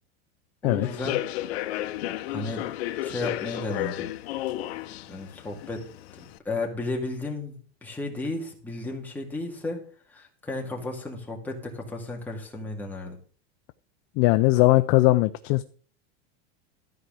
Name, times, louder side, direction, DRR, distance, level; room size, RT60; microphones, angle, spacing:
voice 1, 0.6-1.2 2.3-2.6 3.0-4.1 5.1-5.8 6.2-7.5 7.8-9.8 10.1-13.2, left 2 dB, 5° left, -1 dB, 2.1 m, -33 dB
Human voice / Subway metro underground, 0.8-6.4, left 14 dB, 70° left, 0.9 m, -33 dB
voice 2, 14.2-15.6, left 19 dB, 40° left, 12 dB, 0.4 m, -19 dB
13.0 x 4.7 x 7.5 m, 0.44 s
supercardioid pair, 160°, 32 cm